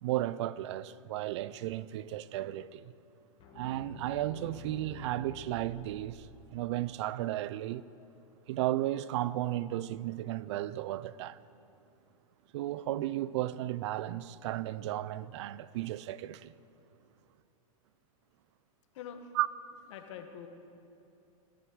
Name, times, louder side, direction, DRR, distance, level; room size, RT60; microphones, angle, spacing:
voice 1, 0.0-2.9 3.6-7.8 8.5-11.4 12.5-16.5 19.4-19.5, right 14 dB, 55° right, 0.5 m, -34 dB
sound 1, 3.4-6.5, left 3 dB, 30° left, 2.3 m, -49 dB
voice 2, 18.9-19.3 19.9-20.5, left 8 dB, 55° left, 1.7 m, -45 dB
16.5 x 12.5 x 6.2 m
hypercardioid pair, 140°, 18 cm